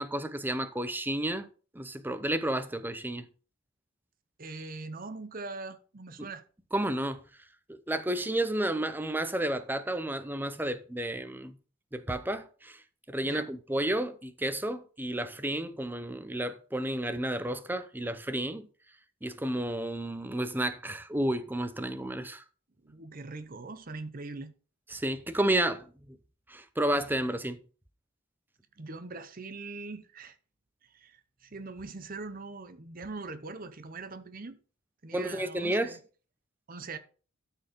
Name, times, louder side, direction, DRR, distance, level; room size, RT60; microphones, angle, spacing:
voice 1, 0.0-1.5 1.7-3.3 6.2-6.3 6.7-7.2 7.9-11.5 11.9-12.8 13.1-18.7 19.2-22.4 24.9-26.2 26.5-27.6 35.1-35.9, right 1 dB, 10° right, 0.7 m, -31 dB
voice 2, 4.4-6.5 13.2-13.5 22.8-24.5 27.2-27.3 28.8-30.4 30.9-34.6 35.0-36.0 36.7-37.0, right 3 dB, 45° right, 0.8 m, -42 dB
13.0 x 4.6 x 5.2 m
head